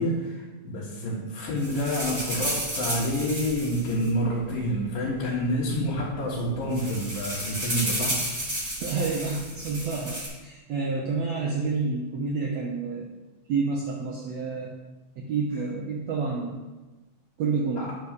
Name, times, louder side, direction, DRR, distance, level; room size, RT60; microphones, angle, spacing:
voice 1, 0.0-8.2 17.8-17.9, equal, 75° left, -7 dB, 3.1 m, -28 dB
sound 1, 1.6-4.8 5.6-5.7 5.9-6.1 6.4-10.3, right 1 dB, 15° right, 3.0 m, -32 dB
voice 2, 8.8-13.1 13.5-14.7 15.2-16.6 17.4-17.9, right 4 dB, 80° right, -1 dB, 1.5 m, -29 dB
8.2 x 4.6 x 6.6 m, 1.2 s
omnidirectional pair, 4.1 m